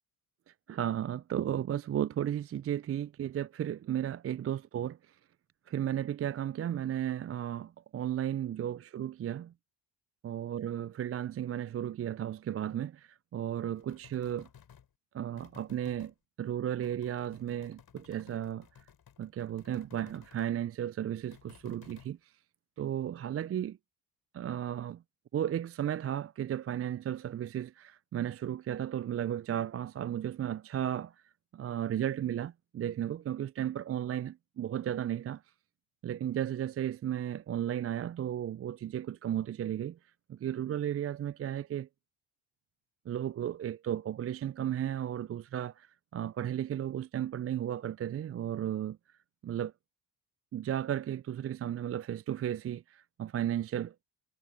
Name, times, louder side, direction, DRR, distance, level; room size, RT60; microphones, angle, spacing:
voice 1, 0.5-5.2 5.7-9.5 10.2-14.5 15.1-18.7 19.2-22.3 22.8-23.8 24.3-25.0 25.3-31.2 31.5-35.4 36.0-40.0 40.3-41.9 43.1-49.0 49.4-49.7 50.5-53.9, right 10 dB, 30° right, 0.5 m, -34 dB
sound 1, 13.8-14.9 15.4-16.1 16.8-20.5 21.3-22.1, left 8 dB, 50° left, 7.6 m, -57 dB
hypercardioid pair, 50°, 47 cm